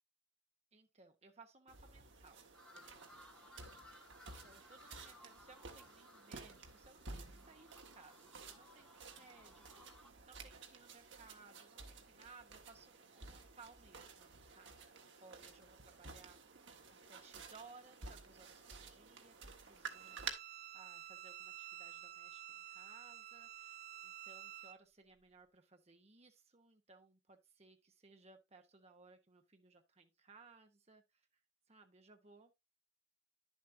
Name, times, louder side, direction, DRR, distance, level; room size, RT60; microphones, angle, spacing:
voice 1, 0.7-3.5 4.4-16.4 16.9-31.3 31.7-32.5, right 4 dB, 35° right, 1.1 m, -62 dB
sound 1, 1.7-20.3, right 4 dB, 70° right, 1.4 m, -53 dB
sound 2, 2.5-10.1, left 2 dB, 5° left, 1.5 m, -62 dB
Bowed string instrument, 19.9-24.8, right 12 dB, 55° right, 0.4 m, -51 dB
10.5 x 7.4 x 2.7 m
head